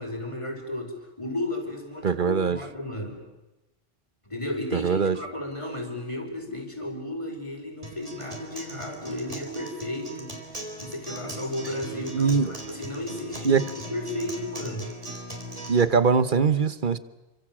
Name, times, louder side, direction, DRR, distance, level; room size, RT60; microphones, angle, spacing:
voice 1, 0.0-3.2 4.2-14.9, left 1 dB, 30° left, 3 dB, 5.1 m, -34 dB
voice 2, 2.0-2.6 4.7-5.2 12.1-12.6 13.4-13.7 15.7-17.0, right 5 dB, 55° right, 14 dB, 1.3 m, -22 dB
Acoustic guitar, 7.8-15.8, right 1 dB, 35° right, 4.1 m, -39 dB
29.0 x 25.0 x 7.5 m, 1.0 s
omnidirectional pair, 1.0 m